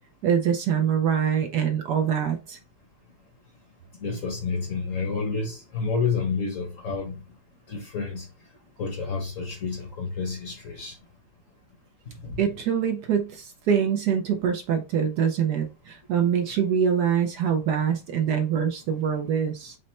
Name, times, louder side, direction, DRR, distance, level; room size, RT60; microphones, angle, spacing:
voice 1, 0.2-2.6 12.4-19.8, right 8 dB, 70° right, 1.0 m, -24 dB
voice 2, 4.0-7.2 7.7-8.3 8.8-11.0 12.2-12.4, left 4 dB, 50° left, 1.0 m, -29 dB
5.2 x 2.1 x 4.2 m
omnidirectional pair, 2.1 m